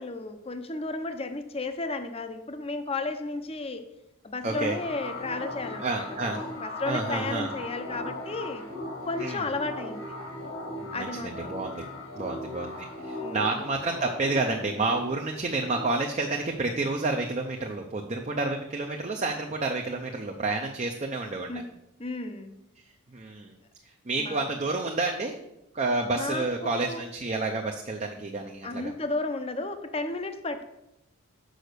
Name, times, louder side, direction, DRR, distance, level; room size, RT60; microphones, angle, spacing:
voice 1, 0.0-3.8 4.2-6.0 6.6-8.6 9.1-10.1 10.9-11.5 13.2-13.6 21.5-21.6 22.0-22.5 24.2-24.4 26.1-27.0 28.6-30.6, left 3 dB, 25° left, 8 dB, 0.6 m, -33 dB
sound 1, 4.4-17.6, left 2 dB, 80° left, 2.7 m, -39 dB
voice 2, 4.4-4.8 5.8-6.5 6.9-7.5 9.2-9.4 10.8-11.9 12.1-21.6 23.1-23.5 24.1-25.4 25.7-28.9, right 3 dB, 30° right, 2 dB, 0.6 m, -30 dB
6.3 x 5.3 x 6.6 m, 0.88 s
head